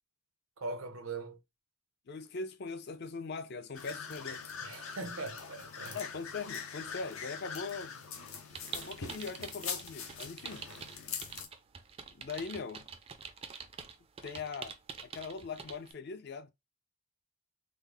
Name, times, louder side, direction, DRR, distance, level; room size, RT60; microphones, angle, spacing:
voice 1, 0.6-1.4 4.6-6.0, right 3 dB, 90° right, 0.8 m, -41 dB
voice 2, 2.1-4.4 5.9-8.1 8.7-10.7 12.1-12.9 14.2-14.7 15.0-16.5, left 4 dB, 55° left, 0.5 m, -41 dB
sound 1, 3.7-11.5, left 6 dB, 85° left, 0.8 m, -43 dB
sound 2, 8.5-15.9, right 6 dB, 30° right, 0.4 m, -46 dB
3.7 x 2.0 x 3.3 m
head